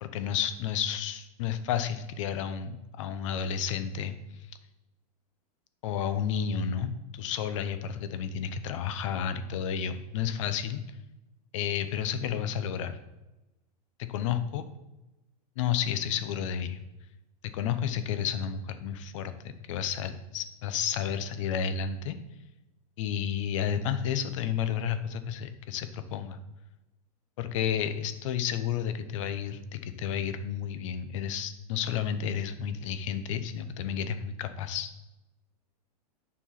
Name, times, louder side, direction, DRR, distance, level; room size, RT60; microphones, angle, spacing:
voice 1, 0.0-4.2 5.8-10.8 11.5-13.0 14.0-14.6 15.6-16.8 17.5-22.2 23.0-26.4 27.4-34.9, left 8 dB, 50° left, 11 dB, 0.8 m, -31 dB
7.2 x 4.4 x 5.8 m, 1.0 s
supercardioid pair, 160°, 20 cm